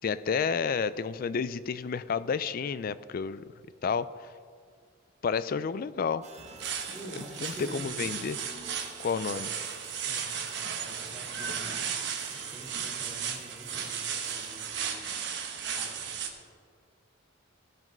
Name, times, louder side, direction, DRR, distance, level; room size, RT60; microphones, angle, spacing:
voice 1, 0.0-3.4 3.8-4.1 5.2-6.3 7.4-8.4 9.0-9.5, left 6 dB, 45° left, 15 dB, 0.3 m, -30 dB
sound 1, 6.2-14.7, right 4 dB, 35° right, 1.2 m, -51 dB
sound 2, 6.4-16.3, right 7 dB, 60° right, 1.1 m, -35 dB
voice 2, 6.9-8.1 9.2-9.5 10.0-11.9 12.3-15.1 15.7-16.1, equal, ahead, -8 dB, 2.8 m, -47 dB
16.5 x 6.1 x 5.2 m, 2.1 s
head